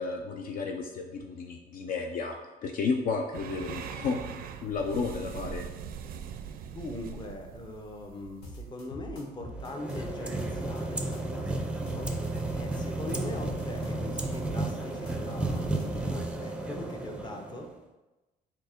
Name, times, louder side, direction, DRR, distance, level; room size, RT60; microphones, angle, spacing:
voice 1, 0.0-2.3 2.6-5.6, left 4 dB, 60° left, 3 dB, 0.5 m, -32 dB
sound 1, 3.3-8.8, right 7 dB, 60° right, 0.4 m, -41 dB
voice 2, 6.7-12.1 12.5-17.7, left 2 dB, 25° left, 3 dB, 0.7 m, -41 dB
sound 2, 8.4-10.8 11.1-12.8 13.1-16.3, equal, 75° left, 1.2 m, -43 dB
sound 3, 9.5-17.8, right 2 dB, 5° right, 0.5 m, -33 dB
4.5 x 2.7 x 4.3 m, 1.1 s
cardioid pair, 110°, 17 cm